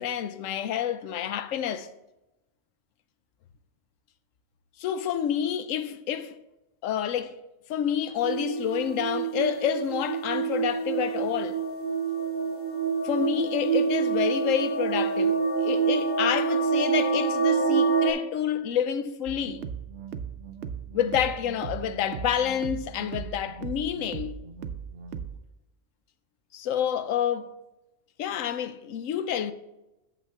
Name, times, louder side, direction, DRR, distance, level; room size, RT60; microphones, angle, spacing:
voice 1, 0.0-1.9 4.8-6.3 6.8-7.4 7.7-11.6 13.0-19.6 20.9-24.3 26.5-27.5 28.2-29.5, left 9 dB, 90° left, 1.0 m, -28 dB
sound 1, 8.2-18.1, right 5 dB, 10° left, 0.8 m, -26 dB
sound 2, 19.3-25.4, right 7 dB, 70° right, 0.8 m, -38 dB
8.4 x 7.1 x 3.5 m
omnidirectional pair, 1.3 m